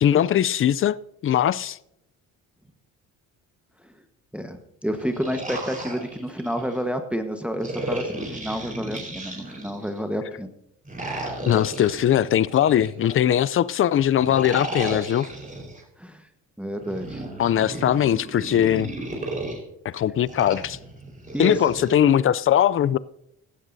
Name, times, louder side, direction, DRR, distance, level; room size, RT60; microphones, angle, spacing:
voice 1, 0.0-1.0 1.2-1.8 11.4-15.3 17.4-18.9 19.8-20.8 21.4-23.0, left 10 dB, 35° left, 0.5 m, -20 dB
voice 2, 4.3-10.5 16.0-16.3 16.6-17.2 21.3-21.6, equal, 5° right, 1.3 m, -29 dB
sound 1, 4.9-6.8 7.6-10.0 10.8-13.4 14.2-15.8 16.8-19.6 20.3-21.9, right 1 dB, 20° right, 4.6 m, -34 dB
16.5 x 12.5 x 2.7 m
supercardioid pair, 70°, 36 cm